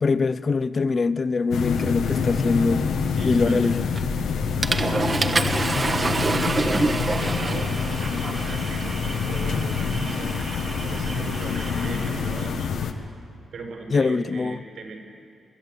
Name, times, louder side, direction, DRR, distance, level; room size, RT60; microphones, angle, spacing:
voice 1, 0.0-2.9 3.2-3.8 13.9-14.6, left 4 dB, 45° left, 15 dB, 0.7 m, -23 dB
sound 1, 1.5-12.9, left 5 dB, 85° left, 1.3 m, -26 dB
voice 2, 2.1-2.4 3.1-3.8 4.7-6.4 7.0-7.7 8.0-10.3 10.8-12.9 13.5-15.0, right 3 dB, 75° right, 2 dB, 5.9 m, -38 dB
Water / Toilet flush, 4.0-4.2 4.6-12.5, right 3 dB, 35° right, 1.2 m, -28 dB
24.0 x 14.0 x 8.3 m, 2.5 s
cardioid pair, 65°, 0 cm